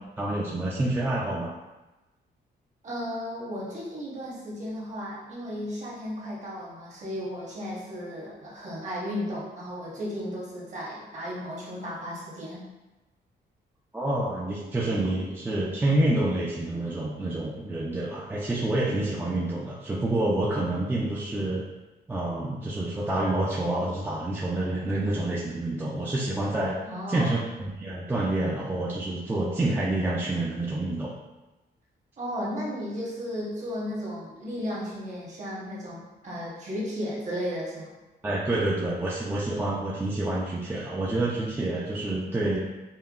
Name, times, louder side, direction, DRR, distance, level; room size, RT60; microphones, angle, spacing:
voice 1, 0.2-1.5 13.9-21.6 22.1-26.8 27.1-31.1 38.2-42.6, right 2 dB, 10° right, -5 dB, 0.3 m, -28 dB
voice 2, 2.8-12.7 26.8-27.4 32.2-37.9, equal, 40° right, -5 dB, 1.0 m, -34 dB
5.4 x 2.1 x 2.4 m, 1.1 s
wide cardioid pair, 165°, 18 cm